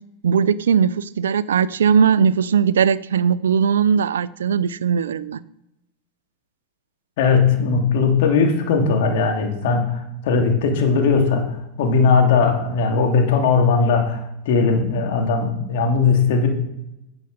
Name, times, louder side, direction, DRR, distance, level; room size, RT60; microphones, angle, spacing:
voice 1, 0.2-5.4, right 7 dB, 85° right, 19 dB, 0.4 m, -19 dB
voice 2, 7.2-16.5, left 5 dB, 65° left, 3 dB, 2.8 m, -18 dB
10.5 x 7.0 x 6.6 m, 0.89 s
hypercardioid pair, 100°, 0 cm